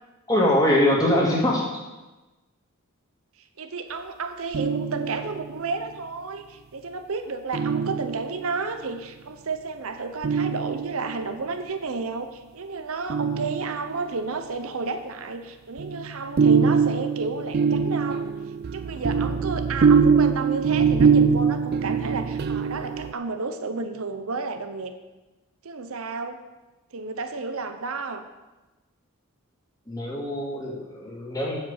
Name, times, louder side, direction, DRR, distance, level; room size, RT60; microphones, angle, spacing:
voice 1, 0.3-1.7 29.9-31.6, left 1 dB, 15° left, -3 dB, 2.2 m, -23 dB
voice 2, 3.6-18.3 18.7-24.9 25.6-26.4 26.9-28.2, right 4 dB, 75° right, 7 dB, 0.8 m, -32 dB
sound 1, 4.5-5.6 7.5-8.6 10.2-11.3 13.1-14.1 15.8-23.1, right 6 dB, 45° right, 0.3 m, -23 dB
7.5 x 7.3 x 7.2 m, 1.1 s
head